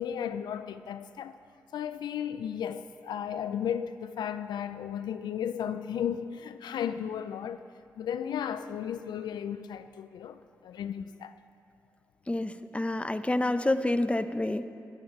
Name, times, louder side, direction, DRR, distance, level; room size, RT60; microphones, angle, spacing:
voice 1, 0.0-1.4 1.7-7.6 8.0-11.3, left 9 dB, 80° left, 0.4 m, -34 dB
voice 2, 12.3-14.7, left 1 dB, 15° left, 0.8 m, -28 dB
24.0 x 8.6 x 4.5 m
supercardioid pair, 40°, 7 cm